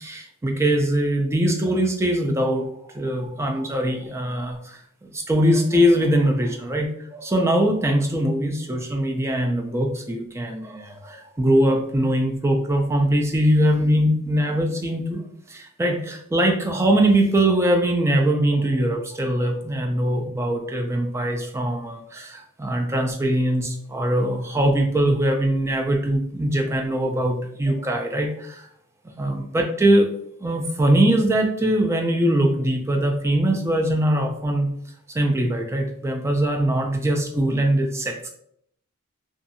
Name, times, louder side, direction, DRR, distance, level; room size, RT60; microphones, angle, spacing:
voice 1, 0.0-15.2 15.5-28.7 29.2-30.1 30.4-34.7 35.1-38.3, right 1 dB, 10° right, 3 dB, 0.3 m, -22 dB
2.6 x 2.3 x 2.6 m, 0.68 s
head